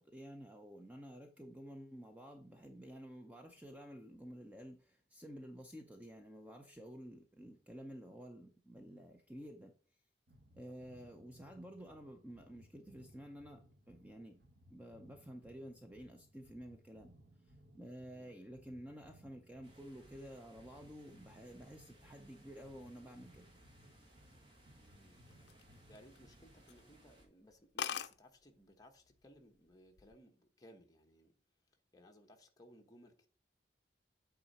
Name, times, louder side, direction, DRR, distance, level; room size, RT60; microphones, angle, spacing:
voice 1, 0.0-9.8 10.5-14.4 14.7-17.1 17.5-23.5, equal, 10° right, 0.6 m, -51 dB
sound 1, 10.3-26.7, equal, 80° right, 1.1 m, -64 dB
sound 2, 19.6-27.3, right 1 dB, 30° right, 1.5 m, -64 dB
voice 2, 24.8-25.2 25.9-31.3 31.7-33.3, equal, 20° left, 1.1 m, -62 dB
sound 3, 25.3-26.3 26.7-26.9 27.3-27.4 27.5-27.6 27.8-28.1 29.1-29.4 29.7-30.1, left 8 dB, 70° left, 0.4 m, -41 dB
8.6 x 3.7 x 4.2 m
head